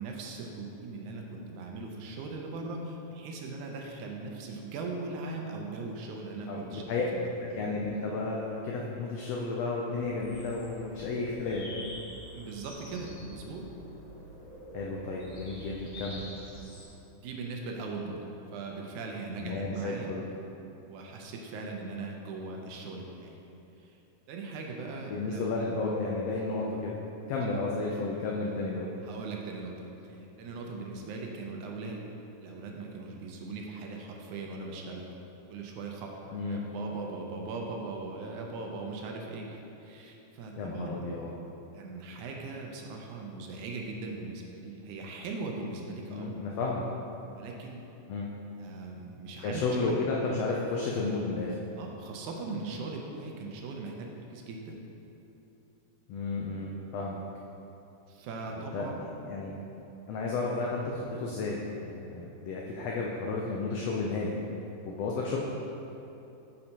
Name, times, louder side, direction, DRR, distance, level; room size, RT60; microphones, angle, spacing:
voice 1, 0.0-6.8 7.1-7.3 12.3-13.7 17.2-18.2 18.5-20.2 20.9-23.4 23.8-24.0 24.3-25.8 27.4-27.5 29.0-32.0 32.4-35.1 35.5-41.0 41.7-46.4 47.3-47.8 48.6-49.6 49.9-50.0 51.8-54.8 58.1-59.1, right 3 dB, 75° right, 0 dB, 2.0 m, -39 dB
voice 2, 6.5-7.0 7.5-11.7 14.7-16.3 19.4-20.2 25.1-27.0 27.3-28.9 36.3-36.6 40.5-41.3 46.1-46.9 48.1-48.3 49.4-51.5 56.1-57.2 58.5-59.5 60.1-64.4 64.8-65.4, left 3 dB, 85° left, -2 dB, 1.4 m, -32 dB
sound 1, 9.9-16.9, equal, 55° left, 1.7 m, -46 dB
8.6 x 6.5 x 2.9 m, 2.9 s
omnidirectional pair, 3.6 m